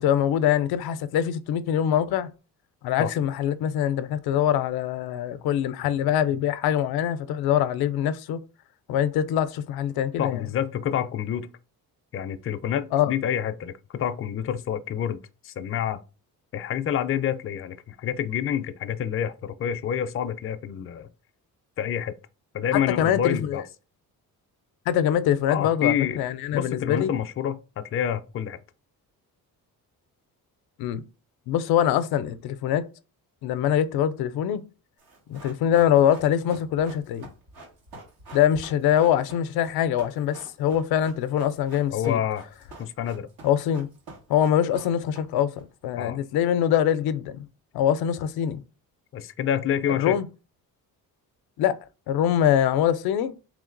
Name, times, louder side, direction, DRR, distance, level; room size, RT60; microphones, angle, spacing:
voice 1, 0.0-2.3 2.8-8.4 8.9-10.5 12.9-13.1 22.7-23.6 24.9-27.1 30.8-31.0 31.5-32.9 33.4-34.6 35.3-37.3 38.3-42.2 43.4-43.9 44.3-47.5 47.7-48.6 49.9-50.3 51.6-51.8 52.1-53.3, left 10 dB, 90° left, 0.5 m, -23 dB
voice 2, 10.2-11.5 12.1-15.2 15.4-16.0 16.5-21.1 21.8-22.1 22.5-23.6 25.5-26.2 26.5-28.6 41.9-42.4 42.8-43.3 46.0-46.2 49.1-50.2, left 9 dB, 40° left, 0.4 m, -28 dB
Run, 35.0-45.6 45.9-46.0, right 2 dB, 80° right, 2.0 m, -46 dB
3.6 x 3.2 x 3.8 m
cardioid pair, 115°, 36 cm